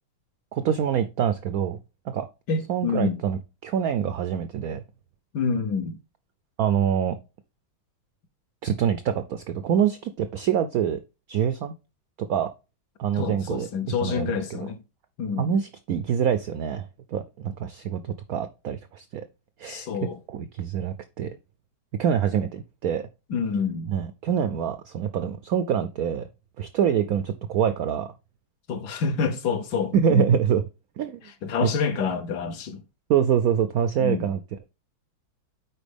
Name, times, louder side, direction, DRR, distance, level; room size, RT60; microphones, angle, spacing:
voice 1, 0.5-1.8 2.1-2.3 2.7-4.8 6.6-7.2 8.6-11.0 11.3-11.7 12.2-12.5 13.0-13.7 14.0-14.6 15.4-16.8 17.1-19.2 19.6-19.9 20.3-21.3 22.0-23.0 23.9-26.3 26.6-28.1 29.9-30.6 31.0-31.2 31.6-31.7 33.1-34.4, right 8 dB, 85° right, 0.7 m, -25 dB
voice 2, 2.5-3.1 5.3-6.0 13.1-14.8 15.2-15.5 19.7-20.2 23.3-23.9 28.7-30.4 31.2-32.8 34.0-34.3, left 5 dB, 65° left, 1.3 m, -27 dB
9.1 x 4.4 x 3.4 m
omnidirectional pair, 2.1 m